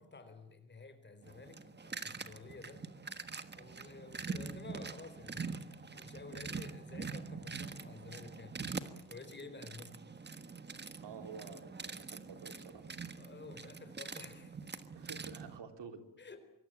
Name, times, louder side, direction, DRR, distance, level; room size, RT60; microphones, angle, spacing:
voice 1, 0.0-2.9 3.5-10.0 13.2-14.6 16.2-16.4, left 3 dB, 25° left, 4.1 m, -52 dB
Tool Belt, 1.2-15.6, right 4 dB, 25° right, 1.4 m, -44 dB
voice 2, 11.0-12.9 15.0-16.0, right 6 dB, 75° right, 3.6 m, -50 dB
25.5 x 24.0 x 8.9 m
wide cardioid pair, 180°, 42 cm